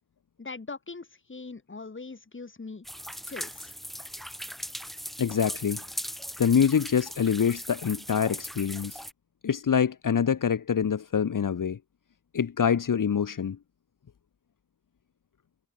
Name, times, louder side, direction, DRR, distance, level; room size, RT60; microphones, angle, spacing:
voice 1, 0.4-2.9 3.2-3.7, left 3 dB, 35° left, 3.4 m, -41 dB
sound 1, 2.8-9.1, equal, ahead, 2.6 m, -39 dB
voice 2, 5.2-5.8 6.4-9.0 9.4-11.8 12.3-13.6, left 7 dB, 60° left, 1.6 m, -25 dB
wide cardioid pair, 85°, 36 cm